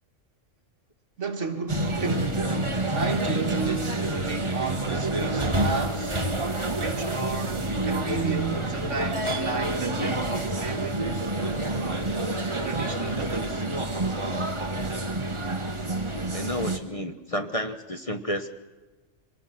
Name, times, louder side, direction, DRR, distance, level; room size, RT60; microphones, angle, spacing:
voice 1, 1.2-2.6 2.9-6.3 6.8-12.1 12.6-13.6, right 4 dB, 65° right, 2.1 m, -33 dB
sound 1, 1.7-16.8, right 2 dB, 25° right, 1.5 m, -28 dB
voice 2, 16.3-18.5, left 1 dB, 30° left, 1.1 m, -31 dB
25.0 x 19.0 x 5.9 m
omnidirectional pair, 1.3 m